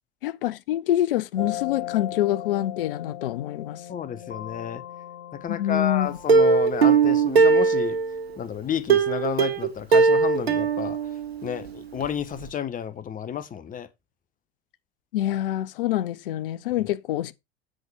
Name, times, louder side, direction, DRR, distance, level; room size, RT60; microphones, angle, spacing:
voice 1, 0.2-3.8 5.5-6.2 15.1-17.3, left 13 dB, 60° left, 0.8 m, -26 dB
sound 1, 1.4-6.6, left 11 dB, 80° left, 1.4 m, -37 dB
voice 2, 3.9-4.8 5.3-8.0 8.4-11.1 11.4-13.9, left 8 dB, 25° left, 1.2 m, -31 dB
Plucked string instrument, 6.3-8.3 8.9-11.7 12.0-12.1 12.5-12.6, right 5 dB, 75° right, 1.3 m, -20 dB
7.9 x 5.8 x 4.3 m
figure-of-eight pair, 75°, 31 cm